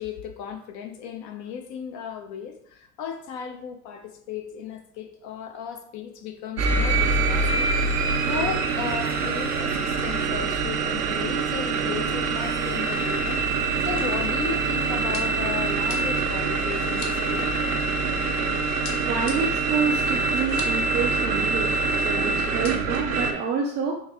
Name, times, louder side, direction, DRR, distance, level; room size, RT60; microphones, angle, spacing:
voice 1, 0.0-7.7 8.2-17.5 22.1-22.4, left 8 dB, 40° left, 6 dB, 0.6 m, -35 dB
sound 1, 6.6-23.3, right 4 dB, 85° right, 0.6 m, -25 dB
sound 2, 13.6-18.4 18.8-20.9 21.2-21.3 21.5-22.0 22.4-23.0, left 4 dB, 55° left, 0.9 m, -43 dB
voice 2, 19.0-23.9, right 6 dB, 25° right, 1 dB, 0.3 m, -28 dB
3.9 x 2.6 x 3.5 m, 0.66 s
figure-of-eight pair, 80°, 46 cm